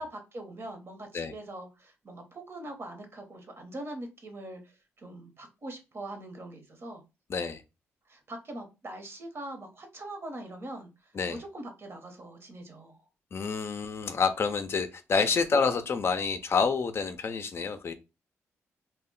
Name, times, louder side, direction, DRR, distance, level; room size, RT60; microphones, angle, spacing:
voice 1, 0.0-7.0 8.1-10.9 11.3-13.0, right 1 dB, 45° right, 0.9 m, -42 dB
voice 2, 7.3-7.6 11.1-11.4 13.3-17.9, left 5 dB, 45° left, 0.4 m, -28 dB
2.1 x 2.0 x 3.7 m
supercardioid pair, 65°, 6 cm